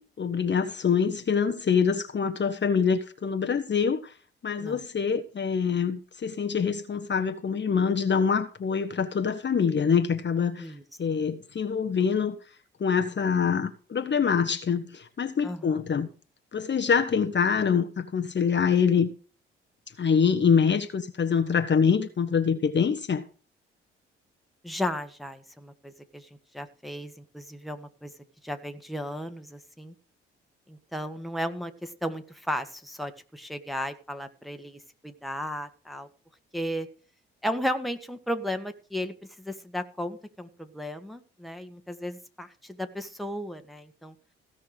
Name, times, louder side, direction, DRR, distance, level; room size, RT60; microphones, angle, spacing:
voice 1, 0.0-4.1 4.4-10.7 11.0-12.4 12.8-16.1 16.5-19.1 20.0-23.2, left 6 dB, 35° left, 1.3 m, -25 dB
voice 2, 15.4-15.8 24.6-26.3 26.5-28.1 28.4-29.9 30.7-36.1 36.5-36.9 37.4-44.1, equal, ahead, 1.9 m, -35 dB
16.5 x 5.7 x 6.6 m
hypercardioid pair, 45°, 30 cm